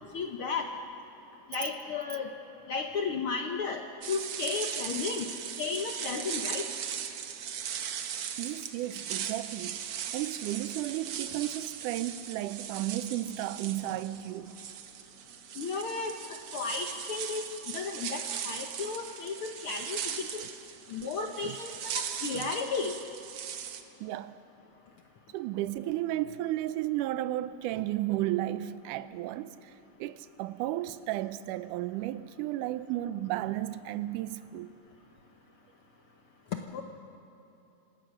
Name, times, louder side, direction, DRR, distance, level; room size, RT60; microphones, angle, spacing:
voice 1, 0.1-0.7 1.5-2.3 2.7-5.3 5.6-6.6 15.6-16.1 16.5-17.4 17.7-20.4 20.9-23.0 36.7-36.8, left 5 dB, 65° left, 1.4 m, -34 dB
sound 1, 4.0-23.8, right 8 dB, 60° right, 1.6 m, -38 dB
voice 2, 8.4-9.8 10.1-14.6 21.4-21.6 22.3-22.5 24.0-24.4 25.3-29.6 30.0-34.7, right 14 dB, 85° right, 2.2 m, -33 dB
27.0 x 17.0 x 6.4 m
omnidirectional pair, 3.6 m